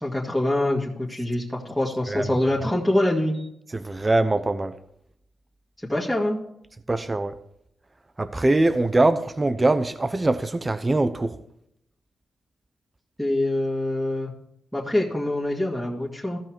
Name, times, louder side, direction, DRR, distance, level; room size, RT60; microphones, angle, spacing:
voice 1, 0.0-3.3 5.9-6.4 13.2-14.3 14.7-16.4, left 1 dB, 5° left, 2.0 m, -24 dB
voice 2, 2.1-2.4 3.7-4.8 6.9-7.4 8.2-11.4, right 2 dB, 25° right, 0.8 m, -22 dB
15.0 x 5.5 x 4.6 m
cardioid pair, 80°, 0 cm